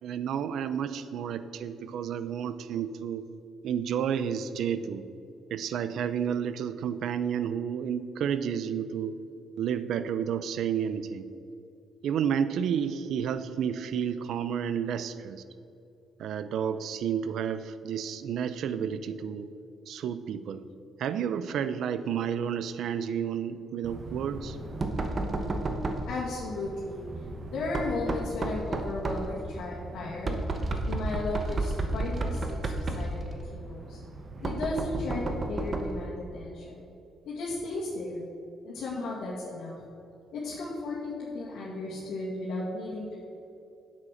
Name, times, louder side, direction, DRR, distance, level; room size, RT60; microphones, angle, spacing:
voice 1, 0.0-3.3 3.6-5.0 5.5-9.2 9.6-11.3 12.0-15.4 16.2-19.5 19.9-20.6 21.0-24.6, right 8 dB, 70° right, 13 dB, 0.5 m, -31 dB
Knock, 23.8-36.1, right 2 dB, 30° right, 1.0 m, -33 dB
voice 2, 26.1-27.1 27.5-30.4 30.8-34.0 34.4-35.2 35.5-36.9 37.3-38.2 38.6-39.8 40.3-43.2, left 2 dB, 75° left, -7 dB, 2.0 m, -35 dB
8.6 x 7.4 x 6.4 m, 2.7 s
cardioid pair, 120°, 0 cm